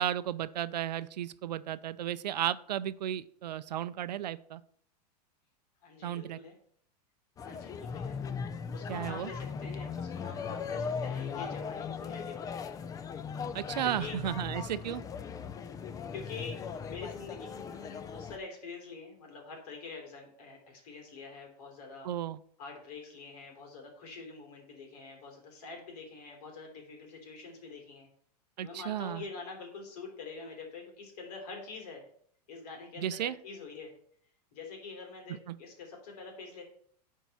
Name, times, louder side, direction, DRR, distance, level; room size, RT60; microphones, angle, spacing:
voice 1, 0.0-4.6 6.0-6.4 8.9-9.3 13.5-15.0 22.0-22.4 28.6-29.2 33.0-33.4 35.5-35.6, right 11 dB, 85° right, 16 dB, 0.5 m, -34 dB
voice 2, 5.8-6.5 7.4-8.2 8.7-12.7 13.8-14.2 16.1-22.1 22.6-28.1 28.6-32.0 32.5-33.9 34.5-36.6, left 4 dB, 70° left, 1 dB, 3.3 m, -46 dB
sound 1, 7.4-18.4, left 6 dB, 15° left, 0.4 m, -38 dB
9.1 x 4.6 x 4.2 m, 0.62 s
hypercardioid pair, 120°, 21 cm